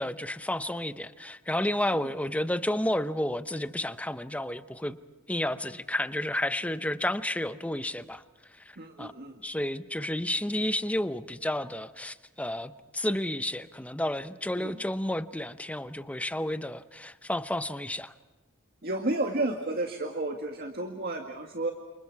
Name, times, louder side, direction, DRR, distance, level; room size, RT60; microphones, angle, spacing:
voice 1, 0.0-5.0 5.3-8.2 8.7-9.1 9.4-18.1, left 1 dB, 5° left, 11 dB, 0.8 m, -31 dB
voice 2, 8.8-9.4 14.6-14.7 18.8-21.7, right 2 dB, 50° right, 3 dB, 1.9 m, -32 dB
30.0 x 28.0 x 4.8 m, 1.3 s
head